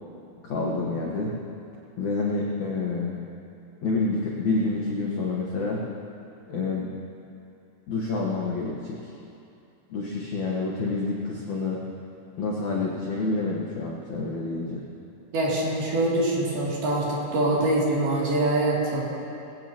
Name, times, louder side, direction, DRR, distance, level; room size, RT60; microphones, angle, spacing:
voice 1, 0.4-1.3 2.0-3.2 3.8-5.8 6.5-6.9 7.9-9.1 9.9-11.8 12.4-14.8, left 3 dB, 75° left, -4 dB, 1.7 m, -28 dB
voice 2, 15.3-19.0, right 2 dB, 55° right, -6 dB, 4.4 m, -24 dB
21.0 x 17.5 x 2.9 m, 2.7 s
omnidirectional pair, 5.5 m